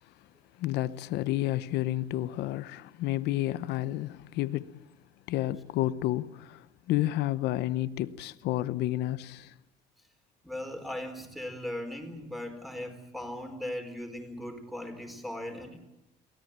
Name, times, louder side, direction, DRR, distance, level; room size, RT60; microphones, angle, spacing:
voice 1, 0.6-4.8 5.3-9.5, left 15 dB, 85° left, 0.8 m, -30 dB
voice 2, 10.4-15.8, left 1 dB, ahead, 4.3 m, -38 dB
23.5 x 17.0 x 8.8 m
cardioid pair, 110°, 17 cm